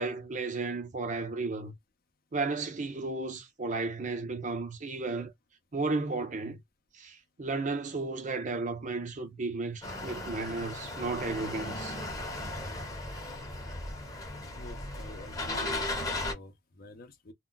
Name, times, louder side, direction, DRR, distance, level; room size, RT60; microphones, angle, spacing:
voice 1, 0.0-1.7 2.3-5.3 5.7-6.6 7.0-12.0, right 3 dB, 40° right, 0.5 m, -34 dB
sound 1, 9.8-16.3, left 2 dB, 20° left, 0.8 m, -36 dB
voice 2, 14.6-17.3, left 1 dB, 50° left, 0.6 m, -47 dB
2.2 x 2.2 x 3.8 m
head